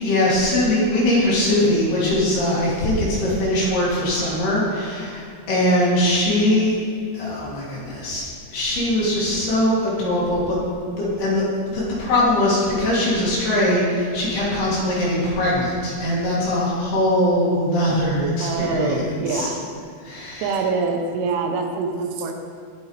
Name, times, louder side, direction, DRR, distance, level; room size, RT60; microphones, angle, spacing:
voice 1, 0.0-6.8 7.1-8.2 8.5-10.6 11.0-19.5 20.1-20.5, left 1 dB, 55° left, -7 dB, 4.6 m, -21 dB
voice 2, 18.4-19.7 20.4-22.3, right 4 dB, 80° right, 3 dB, 3.3 m, -25 dB
19.0 x 8.4 x 3.3 m, 2.4 s
omnidirectional pair, 5.7 m